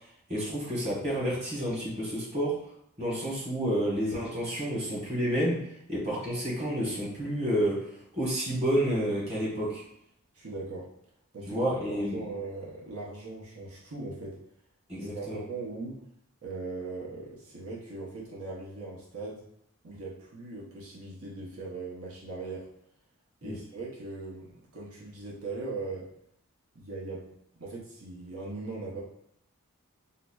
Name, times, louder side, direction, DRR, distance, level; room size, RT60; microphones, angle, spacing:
voice 1, 0.3-2.6 3.0-9.8 11.5-12.2 14.9-15.4 23.4-23.6, equal, 30° right, -5 dB, 1.1 m, -30 dB
voice 2, 10.3-10.9 11.3-14.4 15.0-16.0 16.4-19.4 19.8-22.7 23.4-26.1 26.7-29.0, right 3 dB, 75° right, -4 dB, 0.8 m, -39 dB
5.6 x 2.0 x 2.3 m, 0.75 s
head